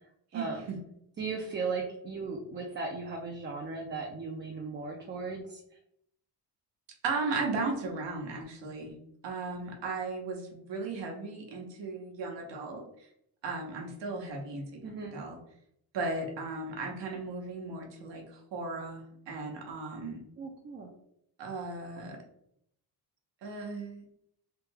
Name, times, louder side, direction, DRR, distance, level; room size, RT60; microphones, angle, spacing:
voice 1, 0.3-0.8 7.0-9.0 9.2-13.1 13.4-15.4 15.9-20.2 21.4-22.2 23.4-24.0, right 3 dB, 85° right, 1 dB, 1.0 m, -36 dB
voice 2, 1.2-5.6 14.8-15.2 20.4-20.9, right 4 dB, 30° right, 1 dB, 0.4 m, -37 dB
3.4 x 2.2 x 3.2 m, 0.73 s
cardioid pair, 135°, 42 cm